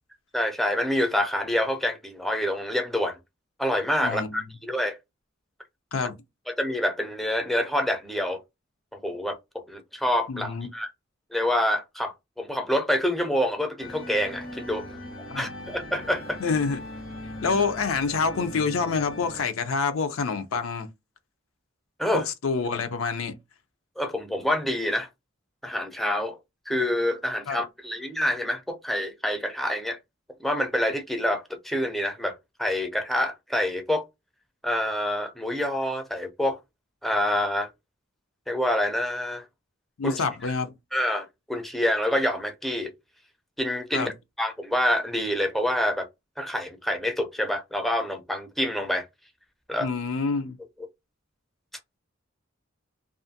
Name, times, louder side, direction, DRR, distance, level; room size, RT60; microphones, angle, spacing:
voice 1, 0.3-3.2 3.6-5.0 6.5-8.4 8.9-9.4 9.7-10.9 11.3-15.0 15.4-16.4 22.0-22.3 24.0-25.1 25.6-26.4 26.7-30.0 30.4-34.0 34.6-36.6 37.0-37.7 38.5-39.4 40.0-40.5 40.9-42.9 43.6-44.1 44.4-46.1 46.4-49.1 49.7-49.9, left 1 dB, ahead, 0.4 m, -27 dB
voice 2, 4.0-4.4 5.9-6.1 10.3-10.7 15.3-15.5 16.4-16.8 17.4-20.9 22.1-23.3 27.5-27.6 40.0-40.7 43.9-44.1 49.8-50.6, left 4 dB, 90° left, 0.5 m, -27 dB
sound 1, 13.8-19.4, left 1 dB, 75° left, 1.0 m, -39 dB
2.4 x 2.4 x 2.6 m
head